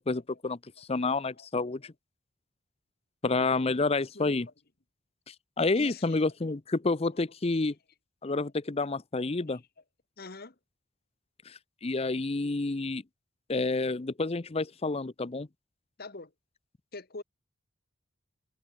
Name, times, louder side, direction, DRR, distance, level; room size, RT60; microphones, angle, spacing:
voice 1, 0.0-1.9 3.2-4.5 5.3-7.7 8.2-9.6 11.5-13.0 13.5-15.5, left 3 dB, 30° left, 0.6 m, -29 dB
voice 2, 4.0-4.5 5.7-6.2 6.5-6.6 7.1-7.2 9.4-9.6 10.2-10.6 16.0-16.3 16.9-17.2, left 3 dB, 50° left, 1.6 m, -45 dB
head